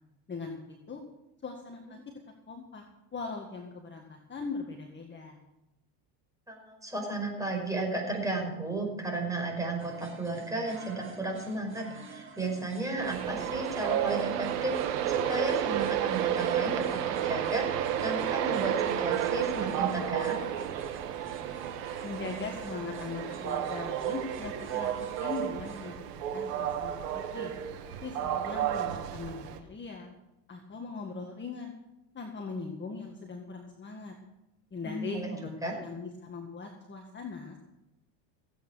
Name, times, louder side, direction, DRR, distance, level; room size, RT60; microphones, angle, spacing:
voice 1, 0.3-1.0 1.4-2.0 2.5-2.8 3.1-5.4 22.0-27.5 28.0-30.1 30.5-31.7 32.1-34.2 34.7-37.6, left 4 dB, 25° left, 2 dB, 1.8 m, -40 dB
voice 2, 6.5-20.4 34.8-35.3 35.6-35.7, right 2 dB, 5° right, 0 dB, 5.5 m, -34 dB
sound 1, 9.8-26.0, right 5 dB, 25° right, 1.9 m, -49 dB
Train, 13.0-29.6, right 10 dB, 85° right, 1.6 m, -31 dB
16.5 x 8.9 x 6.3 m, 0.93 s
supercardioid pair, 105°, 47 cm